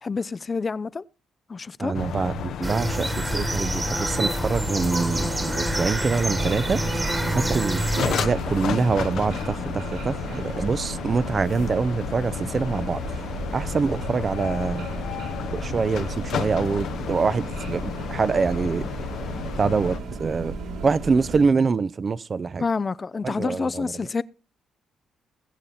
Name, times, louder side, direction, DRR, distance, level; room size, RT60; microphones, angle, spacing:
voice 1, 0.0-1.0 1.5-1.9 22.6-24.2, left 4 dB, 30° left, 0.5 m, -28 dB
voice 2, 1.8-6.9 7.3-13.2 13.5-14.9 15.5-18.9 19.6-20.5 20.8-22.6 23.2-23.9, right 4 dB, 40° right, 0.6 m, -25 dB
sound 1, 1.9-20.0, left 9 dB, 70° left, 0.8 m, -33 dB
sound 2, 2.6-8.3, right 1 dB, 15° right, 1.5 m, -27 dB
sound 3, 6.4-21.4, right 3 dB, 85° right, 3.2 m, -34 dB
20.5 x 7.1 x 4.1 m
cardioid pair, 90°, 0 cm